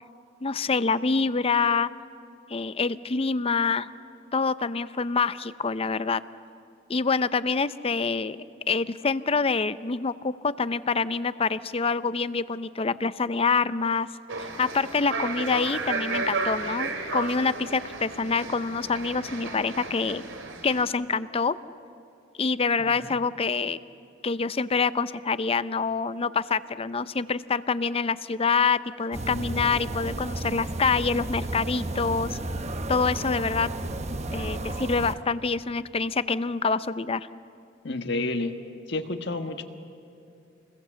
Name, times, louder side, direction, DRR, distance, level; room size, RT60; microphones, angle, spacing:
voice 1, 0.4-1.9 2.5-3.9 4.3-6.2 6.9-8.4 8.7-14.1 14.6-20.2 20.6-21.5 22.4-23.8 24.2-32.4 32.9-33.7 34.3-37.3, left 4 dB, 30° left, 15 dB, 0.6 m, -26 dB
sound 1, 14.3-20.8, right 3 dB, 80° right, 2.7 m, -33 dB
voice 2, 22.8-23.1 37.8-38.6 38.9-39.6, left 2 dB, 65° left, 6 dB, 1.5 m, -30 dB
sound 2, 29.1-35.1, right 2 dB, 35° right, 1.0 m, -33 dB
28.0 x 21.0 x 7.7 m, 2.7 s
head